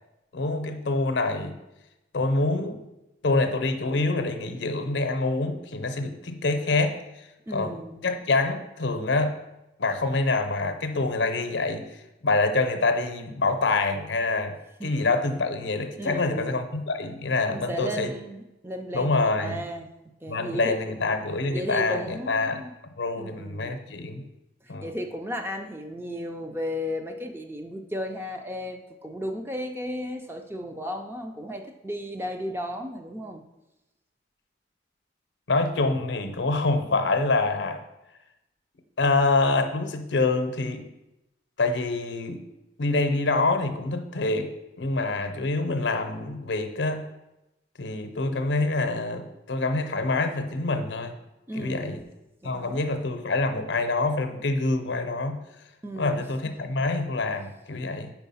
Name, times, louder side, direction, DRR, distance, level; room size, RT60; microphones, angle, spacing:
voice 1, 0.3-1.6 2.1-2.8 3.2-7.8 8.0-9.3 9.8-14.5 14.8-18.1 18.9-19.6 20.3-22.6 23.0-24.2 24.7-24.9 35.5-37.8 39.0-40.9 41.6-42.4 42.8-44.5 44.8-47.0 47.8-51.1 51.5-52.0 52.4-55.4 56.0-58.1, left 3 dB, 75° left, 8 dB, 0.6 m, -26 dB
voice 2, 7.5-8.0 14.8-15.1 16.0-16.6 17.5-19.9 20.2-21.0 21.5-22.7 23.2-23.8 24.6-33.4 51.5-52.1 52.4-52.9 55.8-56.5, equal, 10° right, 5 dB, 0.4 m, -35 dB
4.9 x 4.6 x 5.5 m, 0.95 s
head